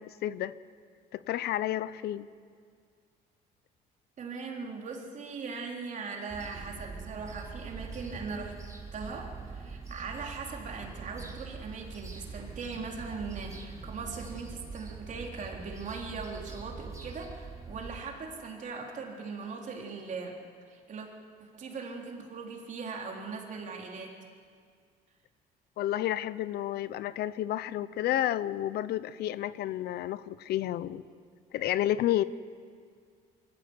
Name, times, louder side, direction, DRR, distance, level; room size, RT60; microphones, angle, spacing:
voice 1, 0.1-0.5 1.1-2.3 25.8-31.0 31.5-32.2, left 13 dB, 70° left, 17 dB, 0.7 m, -31 dB
voice 2, 4.2-8.5 8.9-20.4 20.7-21.1 21.5-24.1, right 4 dB, 50° right, 0 dB, 3.7 m, -40 dB
sound 1, 6.3-18.0, right 4 dB, 20° right, 2.6 m, -43 dB
24.0 x 15.0 x 8.1 m, 2.1 s
cardioid pair, 110°, 17 cm